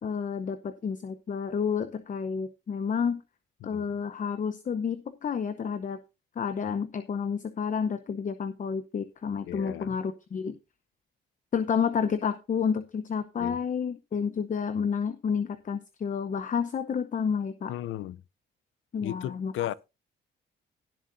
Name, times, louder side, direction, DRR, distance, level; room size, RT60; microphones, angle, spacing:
voice 1, 0.0-3.2 3.6-6.0 6.4-10.6 11.5-17.7 18.9-19.5, left 6 dB, 40° left, 0.8 m, -30 dB
voice 2, 9.5-10.0 13.4-13.6 17.7-18.2 19.0-19.7, left 13 dB, 80° left, 0.6 m, -35 dB
17.5 x 7.4 x 2.7 m
cardioid pair, 90°, 20 cm